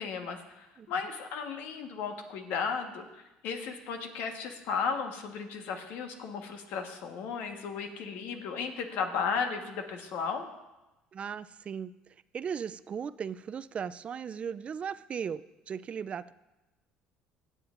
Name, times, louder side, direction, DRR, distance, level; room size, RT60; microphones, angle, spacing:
voice 1, 0.0-10.5, left 5 dB, 70° left, 5 dB, 1.3 m, -35 dB
voice 2, 11.1-15.4 15.7-16.3, right 7 dB, 35° right, 16 dB, 0.4 m, -37 dB
22.5 x 7.7 x 2.5 m, 1.0 s
supercardioid pair, 90°, 3 cm